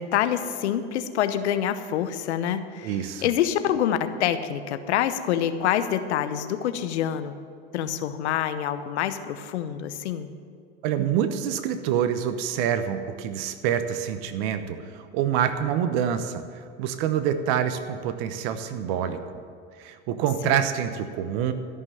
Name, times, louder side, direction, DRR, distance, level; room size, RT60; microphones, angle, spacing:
voice 1, 0.0-7.3 7.7-10.3 20.4-20.6, left 10 dB, 85° left, 11 dB, 0.9 m, -26 dB
voice 2, 2.8-3.3 10.8-16.4 16.8-19.2 19.8-21.5, right 9 dB, 65° right, 9 dB, 1.0 m, -26 dB
13.5 x 5.8 x 9.1 m, 2.3 s
hypercardioid pair, 95°, 33 cm